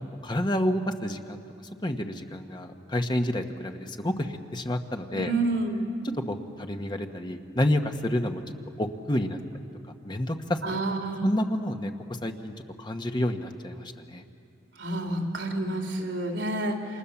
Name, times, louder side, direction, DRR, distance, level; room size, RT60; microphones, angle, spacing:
voice 1, 0.0-1.4 1.8-5.3 6.3-8.4 8.8-9.4 10.0-10.6 11.2-11.9 12.2-12.5 12.8-14.2, left 1 dB, 25° left, 5 dB, 1.2 m, -29 dB
voice 2, 5.1-5.9 10.6-11.3 14.8-17.0, right 2 dB, 90° right, 1 dB, 3.7 m, -29 dB
29.0 x 27.0 x 7.2 m, 2.5 s
head